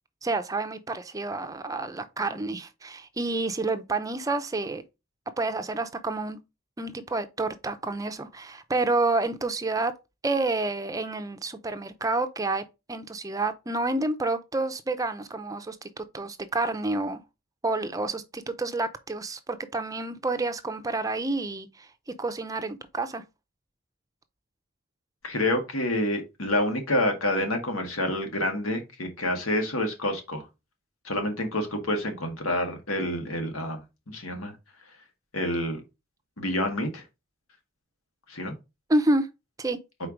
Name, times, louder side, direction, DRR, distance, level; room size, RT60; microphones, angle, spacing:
voice 1, 0.2-4.8 5.4-6.4 6.8-9.9 10.2-12.6 12.9-17.2 17.6-21.9 22.2-23.2 38.9-39.3 39.6-39.8, right 2 dB, 15° right, 0.5 m, -29 dB
voice 2, 25.2-30.5 31.0-33.8 34.1-34.5 35.3-35.8 36.4-37.0 38.3-38.5, left 1 dB, 90° left, 1.7 m, -28 dB
4.5 x 4.4 x 5.0 m
head